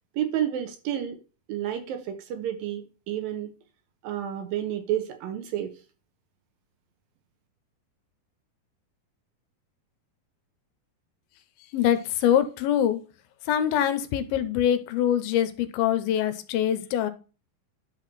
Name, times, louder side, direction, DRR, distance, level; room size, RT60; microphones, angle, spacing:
voice 1, 0.1-1.2 1.5-3.5 4.0-5.7, right 11 dB, 70° right, 7 dB, 2.7 m, -30 dB
voice 2, 11.7-13.0 13.4-17.1, left 10 dB, 85° left, 12 dB, 2.6 m, -24 dB
10.5 x 6.2 x 4.1 m, 0.34 s
omnidirectional pair, 4.4 m